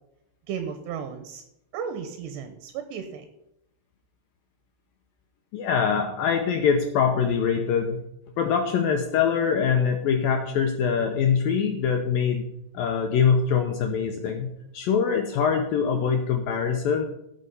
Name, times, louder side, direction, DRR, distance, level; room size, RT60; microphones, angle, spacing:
voice 1, 0.5-1.4 1.7-3.3, right 7 dB, 75° right, 8 dB, 3.0 m, -34 dB
voice 2, 5.5-8.0 8.4-12.5 12.7-17.1, left 6 dB, 75° left, 4 dB, 2.1 m, -23 dB
16.5 x 6.4 x 5.4 m, 0.84 s
omnidirectional pair, 5.2 m